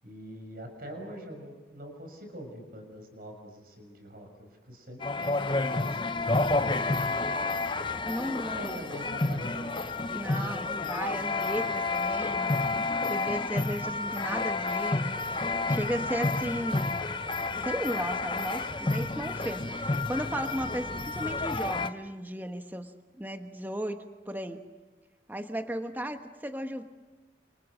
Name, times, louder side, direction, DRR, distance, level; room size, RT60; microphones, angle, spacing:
voice 1, 0.0-6.2 6.5-7.6 8.2-9.8, equal, 55° right, 4 dB, 6.6 m, -44 dB
sound 1, 5.0-21.9, left 3 dB, 25° left, 0.8 m, -30 dB
voice 2, 8.0-8.7 10.1-15.2 15.7-17.0 17.6-22.9 23.2-24.0 24.3-24.6 25.3-26.8, equal, 10° right, 6 dB, 1.4 m, -35 dB
29.5 x 27.5 x 6.4 m, 1.2 s
head